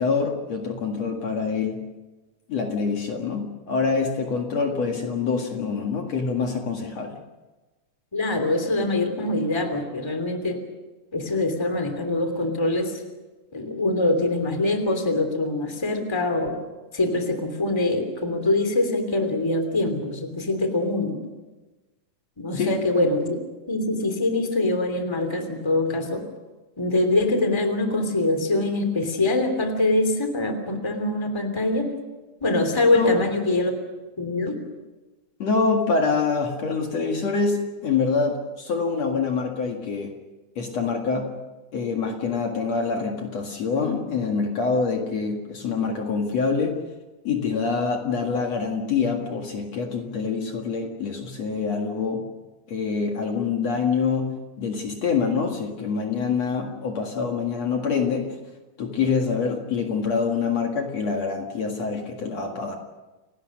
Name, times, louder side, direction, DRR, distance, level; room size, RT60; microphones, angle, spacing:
voice 1, 0.0-1.8 2.5-7.2 22.5-22.8 32.9-33.1 35.4-40.1 40.6-41.3 41.7-46.8 47.2-52.3 52.7-54.3 54.6-58.3 58.8-62.8, left 5 dB, 55° left, 2 dB, 2.9 m, -25 dB
voice 2, 8.1-10.6 11.1-13.0 13.5-16.5 16.9-21.2 22.4-23.4 23.7-26.2 26.8-31.9 32.4-33.7 34.2-34.6, left 2 dB, 10° left, 6 dB, 2.6 m, -24 dB
29.5 x 18.5 x 6.5 m, 1.2 s
omnidirectional pair, 3.8 m